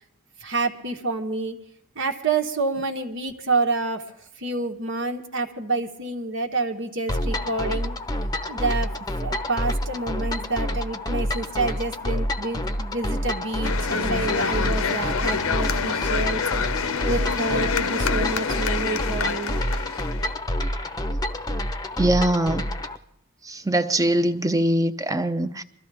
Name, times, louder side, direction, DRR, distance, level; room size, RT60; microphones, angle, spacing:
voice 1, 0.4-1.6 1.9-4.0 4.4-7.9 8.5-8.9 9.2-16.4 17.0-19.6, right 3 dB, 60° right, 1.4 m, -28 dB
sound 1, 7.1-23.0, equal, 15° left, 0.8 m, -28 dB
sound 2, 13.6-20.3, left 6 dB, 70° left, 0.8 m, -27 dB
voice 2, 22.0-22.7 23.5-25.6, right 1 dB, 15° right, 0.8 m, -22 dB
23.0 x 14.5 x 3.5 m
head